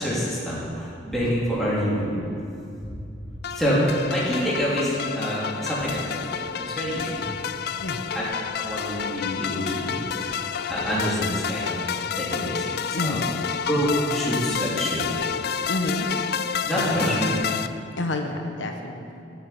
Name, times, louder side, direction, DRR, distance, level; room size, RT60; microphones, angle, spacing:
voice 1, 0.0-2.2 2.8-2.9 3.5-6.2 6.7-7.2 8.1-8.2 8.6-11.7 12.2-12.7 13.0-13.2 13.6-15.0 16.6-17.3, equal, ahead, -8 dB, 2.8 m, -26 dB
sound 1, 3.4-17.7, left 7 dB, 55° left, 0.4 m, -29 dB
voice 2, 7.7-8.0 12.9-13.3 15.7-16.1 18.0-19.2, left 2 dB, 85° left, 4 dB, 1.0 m, -29 dB
12.0 x 8.5 x 5.7 m, 2.6 s
head